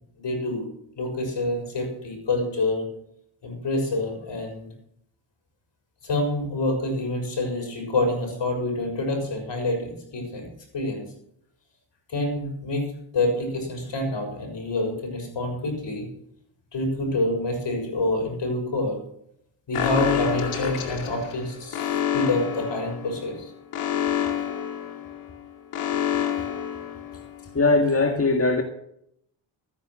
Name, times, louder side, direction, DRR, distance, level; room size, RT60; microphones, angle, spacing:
voice 1, 0.2-0.7 1.0-2.8 3.4-4.7 6.0-10.5 10.7-11.1 12.1-12.9 13.1-16.1 16.7-19.0 19.7-23.5, left 2 dB, 60° left, 6.8 m, -27 dB
Alarm, 19.7-27.5, left 9 dB, 85° left, 2.4 m, -28 dB
voice 2, 27.6-28.6, left 3 dB, 30° left, 1.8 m, -20 dB
14.0 x 10.5 x 6.2 m
supercardioid pair, 55°, 49 cm